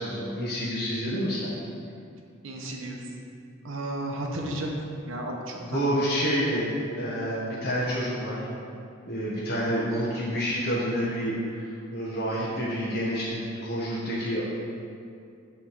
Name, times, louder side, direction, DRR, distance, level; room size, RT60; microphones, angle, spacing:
voice 1, 0.0-1.5 5.6-6.7 7.0-8.5 9.1-14.4, equal, 50° left, -7 dB, 1.2 m, -28 dB
voice 2, 2.4-3.0 3.6-4.7 5.1-5.9, right 1 dB, 85° right, 0 dB, 0.9 m, -33 dB
8.4 x 3.3 x 6.1 m, 2.4 s
head